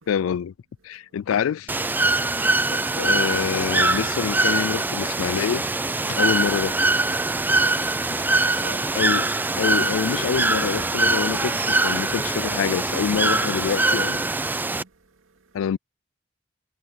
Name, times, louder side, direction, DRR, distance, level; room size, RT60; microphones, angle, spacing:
voice 1, 0.1-0.5 0.8-1.7 2.7-5.6 6.1-6.8 9.0-9.3 9.6-14.2 15.5-15.8, left 8 dB, 80° left, 0.3 m, -26 dB
voice 2, 0.9-1.2 14.4-15.7, right 3 dB, 90° right, 2.2 m, -49 dB
Bird / Water, 1.7-14.8, right 2 dB, 10° right, 0.3 m, -23 dB
sound 1, 7.2-9.4 9.8-12.0 12.4-12.6 13.0-14.1, right 3 dB, 55° right, 2.3 m, -46 dB
sound 2, 7.4-13.1 13.5-13.9, left 2 dB, 10° left, 3.9 m, -50 dB
head